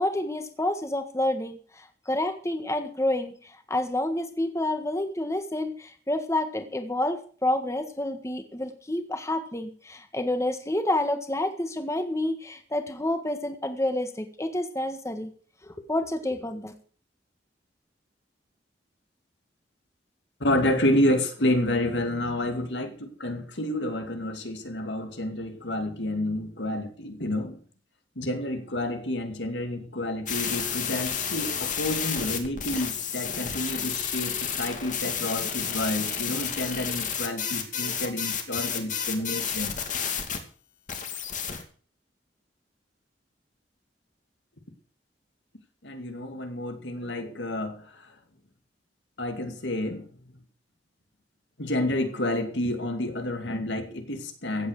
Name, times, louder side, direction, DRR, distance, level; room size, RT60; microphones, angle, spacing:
voice 1, 0.0-15.3 15.7-16.7, left 1 dB, 15° left, 7 dB, 1.6 m, -29 dB
voice 2, 20.4-27.6 28.2-39.7 45.8-48.1 49.2-50.3 51.6-54.7, left 1 dB, 80° left, 6 dB, 2.6 m, -29 dB
sound 1, 30.3-40.4 40.9-41.6, left 7 dB, 45° left, 2.4 m, -31 dB
16.0 x 8.3 x 6.6 m, 0.43 s
head